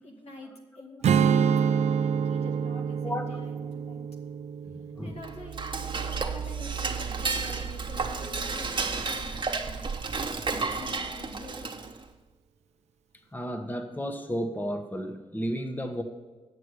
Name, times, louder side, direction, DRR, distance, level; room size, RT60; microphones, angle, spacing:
voice 1, 0.0-4.0 5.0-9.8 10.5-11.9, left 2 dB, 75° left, 1 dB, 2.1 m, -46 dB
Strum, 1.0-6.4, right 7 dB, 90° right, 0.4 m, -27 dB
voice 2, 3.0-3.4 3.9-4.0 4.7-5.2 13.3-16.0, equal, 15° left, 6 dB, 1.0 m, -33 dB
Dishes pots and pans / Cutlery silverware, 5.2-12.0, right 4 dB, 45° right, 1.1 m, -32 dB
9.2 x 6.4 x 8.1 m, 1.2 s
cardioid pair, 70°, 11 cm